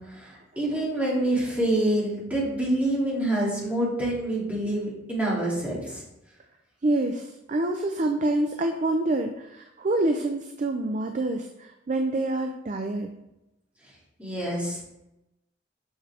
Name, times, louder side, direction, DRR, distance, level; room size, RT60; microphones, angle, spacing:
voice 1, 0.1-6.0 14.2-14.9, right 1 dB, 10° right, -7 dB, 2.6 m, -26 dB
voice 2, 6.8-13.1, right 2 dB, 40° right, 5 dB, 0.5 m, -27 dB
7.1 x 6.2 x 3.4 m, 0.88 s
head